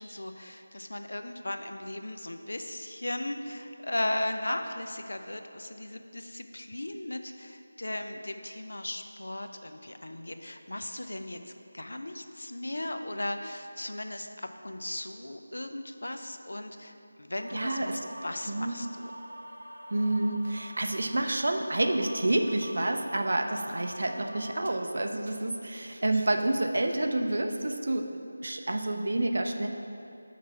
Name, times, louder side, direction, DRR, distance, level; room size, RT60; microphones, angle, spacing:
voice 1, 0.0-11.4 11.7-19.1, left 1 dB, 60° left, 7 dB, 0.5 m, -37 dB
sound 1, 17.4-24.5, equal, 75° right, 1.1 m, -46 dB
voice 2, 17.5-18.0 18.5-18.8 19.9-28.1 28.4-29.7, right 1 dB, 50° right, 5 dB, 0.5 m, -29 dB
6.0 x 4.3 x 5.7 m, 2.6 s
figure-of-eight pair, 165°, 0 cm